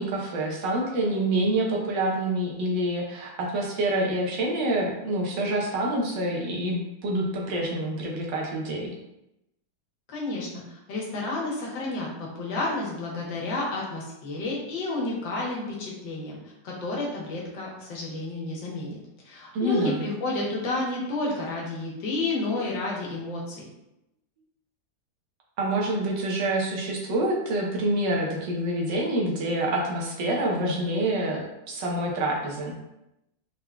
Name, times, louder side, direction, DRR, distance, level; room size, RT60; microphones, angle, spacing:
voice 1, 0.0-8.9 19.5-20.0 25.6-32.7, right 1 dB, 75° right, -1 dB, 1.5 m, -27 dB
voice 2, 10.1-16.4 16.6-19.0 19.2-23.7, left 2 dB, 80° left, -3 dB, 1.8 m, -31 dB
4.6 x 3.7 x 2.2 m, 0.88 s
omnidirectional pair, 2.0 m